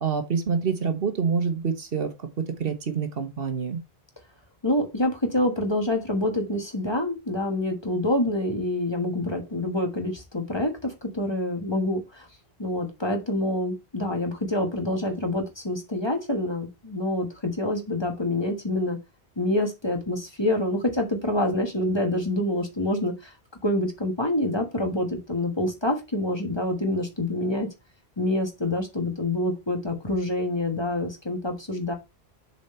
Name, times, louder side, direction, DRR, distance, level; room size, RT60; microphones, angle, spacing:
voice 1, 0.0-3.8, right 6 dB, 65° right, 1.2 m, -27 dB
voice 2, 4.6-12.3 12.6-19.0 19.4-23.3 23.6-27.7 28.2-31.9, left 1 dB, 25° left, 1.4 m, -26 dB
7.1 x 4.2 x 4.3 m
omnidirectional pair, 1.1 m